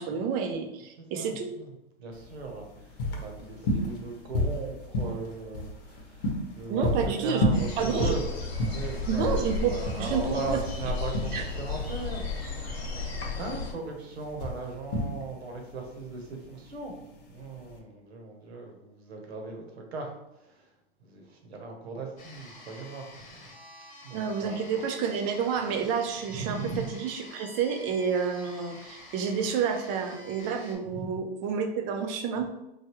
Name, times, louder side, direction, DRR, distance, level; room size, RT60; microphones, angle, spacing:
voice 1, 0.0-1.5 6.7-8.2 9.1-10.6 11.3-11.5 24.1-32.5, right 6 dB, 30° right, 5 dB, 0.3 m, -29 dB
voice 2, 1.0-1.7 2.0-2.7 3.2-8.2 8.7-12.8 13.3-17.0 17.3-19.6 19.9-20.1 21.0-23.5 24.0-24.6 26.3-26.9 30.9-31.2, right 4 dB, 90° right, 2 dB, 0.9 m, -38 dB
sound 1, 2.1-17.8, left 1 dB, 60° left, 0.9 m, -32 dB
sound 2, 7.5-13.7, left 4 dB, 85° left, 1.2 m, -34 dB
sound 3, 22.2-30.8, left 2 dB, 25° left, 0.9 m, -49 dB
3.4 x 2.3 x 2.9 m, 0.92 s
hypercardioid pair, 130°, 31 cm